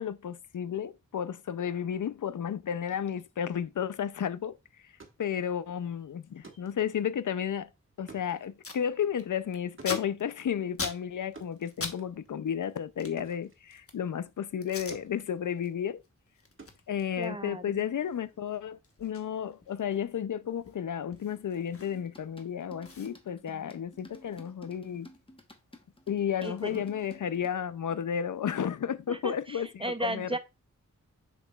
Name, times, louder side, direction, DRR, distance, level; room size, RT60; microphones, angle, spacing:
voice 1, 0.0-4.5 5.2-7.7 8.0-16.0 16.9-25.1 26.1-30.4, left 8 dB, 75° left, 0.5 m, -32 dB
sound 1, 4.8-14.7 14.9-17.9, right 3 dB, 40° right, 1.4 m, -55 dB
Packing tape duct tape, 8.5-8.8 9.1-12.0 12.2-14.1 14.6-15.0 15.4-15.7 16.0-22.2 22.5-22.6 22.8-25.2 25.5-27.5, left 4 dB, 45° left, 1.2 m, -43 dB
voice 2, 17.2-17.8 26.4-26.8 29.1-30.4, right 1 dB, 15° right, 0.6 m, -35 dB
sound 2, 21.8-27.5, left 1 dB, 15° left, 1.1 m, -52 dB
6.8 x 6.1 x 2.3 m
wide cardioid pair, 95°, 31 cm